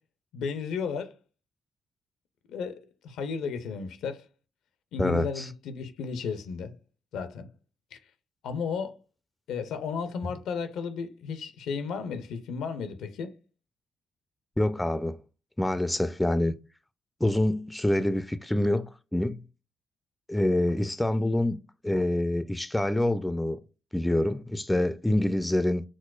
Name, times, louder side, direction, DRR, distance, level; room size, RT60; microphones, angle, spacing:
voice 1, 0.3-1.1 2.5-4.3 4.9-6.7 7.1-7.5 7.9-8.0 8.4-9.0 9.5-13.3, left 5 dB, 75° left, 0.5 m, -34 dB
voice 2, 5.0-5.5 10.2-10.3 14.6-15.2 15.6-16.5 17.2-19.4 20.3-21.6 21.8-23.6 23.9-25.8, left 1 dB, 10° left, 0.4 m, -26 dB
6.0 x 2.0 x 2.3 m
hypercardioid pair, 45°, 0 cm